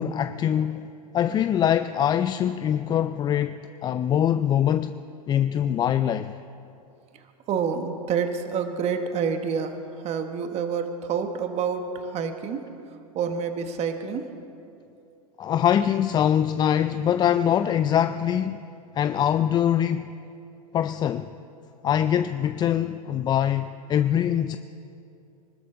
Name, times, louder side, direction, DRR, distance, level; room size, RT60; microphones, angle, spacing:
voice 1, 0.0-4.9 5.3-6.4 15.4-18.6 18.9-20.1 20.7-21.3 21.8-24.6, left 10 dB, 20° left, 0.4 m, -23 dB
voice 2, 7.5-9.8 10.0-12.6 13.1-14.3, right 6 dB, 35° right, 1.3 m, -28 dB
24.5 x 13.0 x 3.8 m
hypercardioid pair, 105°, 19 cm